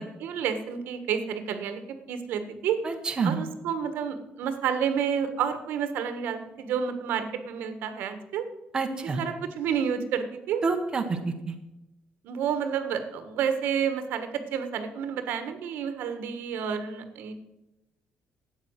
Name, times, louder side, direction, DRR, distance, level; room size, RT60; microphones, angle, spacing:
voice 1, 0.2-1.8 2.1-2.8 3.2-8.5 9.2-10.6 12.2-17.3, right 7 dB, 80° right, 9 dB, 1.5 m, -30 dB
voice 2, 2.8-3.4 8.7-9.2 10.6-11.2 11.5-11.6, right 4 dB, 25° right, 4 dB, 1.2 m, -27 dB
13.0 x 8.7 x 8.0 m, 0.97 s
cardioid pair, 175°, 3 cm